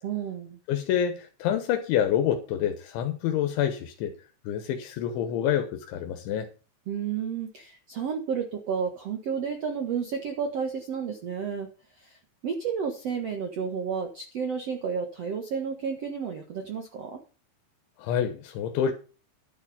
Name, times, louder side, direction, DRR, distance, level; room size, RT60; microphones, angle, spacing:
voice 1, 0.0-0.6 6.9-11.7 12.0-12.2 12.4-17.2, right 6 dB, 85° right, 1.4 m, -31 dB
voice 2, 0.7-4.1 4.5-6.5 18.0-18.9, left 9 dB, 80° left, 3.5 m, -27 dB
11.5 x 7.4 x 5.6 m
omnidirectional pair, 5.3 m